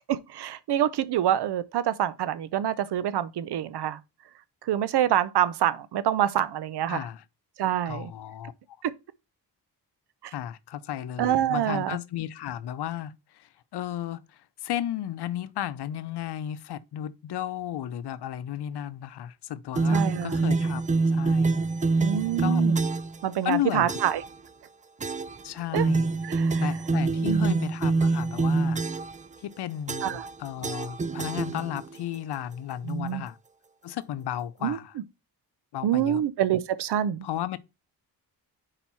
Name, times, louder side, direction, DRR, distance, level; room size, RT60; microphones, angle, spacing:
voice 1, 0.0-4.0 4.6-7.0 7.6-8.1 8.8-8.9 10.2-10.3 11.2-12.0 19.9-20.4 22.0-22.8 23.2-24.2 25.7-25.9 26.2-26.7 27.3-27.6 30.0-30.2 32.8-33.2 34.6-34.8 35.8-37.3, right 11 dB, 70° right, 0.7 m, -26 dB
voice 2, 6.9-7.2 7.9-8.8 10.3-21.6 22.4-22.7 23.4-23.9 25.4-26.1 26.6-28.8 29.4-33.4 33.8-34.9 35.7-36.2 37.2-37.6, left 11 dB, 70° left, 0.7 m, -34 dB
sound 1, 19.8-23.2 23.9-24.3 25.0-25.4 25.8-29.2 29.9-30.3 30.6-32.0, right 3 dB, 20° right, 0.4 m, -26 dB
4.9 x 4.5 x 5.5 m
cardioid pair, 90°, 41 cm